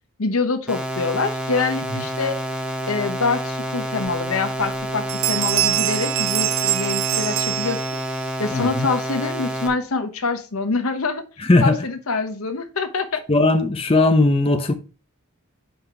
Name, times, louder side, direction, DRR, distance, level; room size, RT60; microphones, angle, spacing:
voice 1, 0.2-2.4 2.9-7.8 8.4-11.2 11.6-13.2, left 4 dB, 75° left, 1.0 m, -25 dB
sound 1, 0.7-9.7, equal, 5° right, 0.8 m, -28 dB
sound 2, 4.1-4.2 4.6-4.8 5.1-8.2, right 15 dB, 65° right, 0.5 m, -24 dB
voice 2, 8.5-8.9 11.4-11.8 13.3-14.7, left 2 dB, 25° left, 0.6 m, -18 dB
5.6 x 5.4 x 4.4 m
head